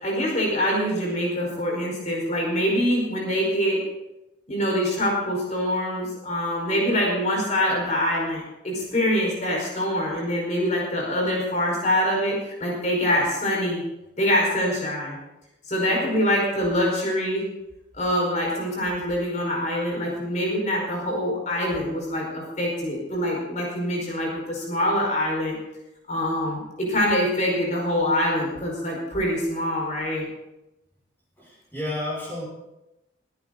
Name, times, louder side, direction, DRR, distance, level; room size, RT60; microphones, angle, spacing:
voice 1, 0.0-3.8 4.5-13.8 14.2-15.2 15.7-17.5 17.9-25.6 26.1-30.3, equal, 40° left, -2 dB, 5.1 m, -24 dB
voice 2, 31.4-32.5, left 1 dB, 10° left, -6 dB, 6.2 m, -31 dB
24.0 x 9.7 x 4.0 m, 0.92 s
head